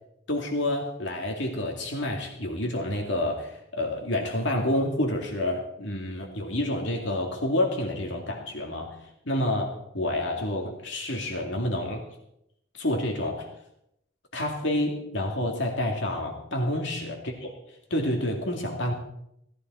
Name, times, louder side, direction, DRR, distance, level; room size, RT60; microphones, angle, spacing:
voice 1, 0.3-9.0 9.3-12.0 12.7-13.5 14.3-17.5 17.9-18.9, left 1 dB, 65° left, 1 dB, 2.4 m, -28 dB
17.5 x 14.5 x 4.6 m, 0.78 s
head